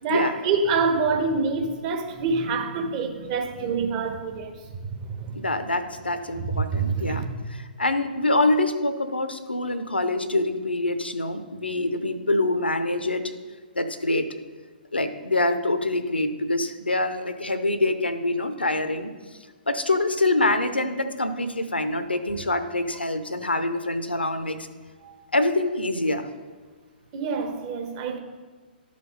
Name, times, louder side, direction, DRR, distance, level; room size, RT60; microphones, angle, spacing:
voice 1, 0.0-5.4 6.3-7.2 25.0-25.2 27.1-28.2, right 4 dB, 35° right, 1.1 m, -26 dB
voice 2, 5.3-7.2 7.5-13.3 13.8-14.3 14.9-19.1 19.7-24.7 25.3-26.3, left 2 dB, 85° left, 0.8 m, -25 dB
11.5 x 5.2 x 5.3 m
figure-of-eight pair, 120°, 5 cm